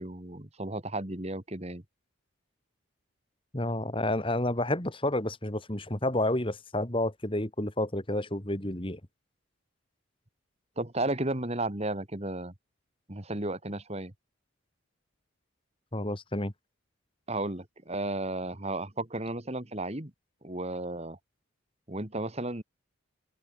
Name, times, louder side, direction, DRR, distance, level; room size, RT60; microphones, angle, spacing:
voice 1, 0.0-1.8 10.8-12.5 13.1-14.1 17.3-20.1 20.4-21.2 21.9-22.6, right 2 dB, 30° right, 2.1 m, -33 dB
voice 2, 3.5-9.0 15.9-16.5, left 1 dB, 25° left, 2.3 m, -30 dB
open air
head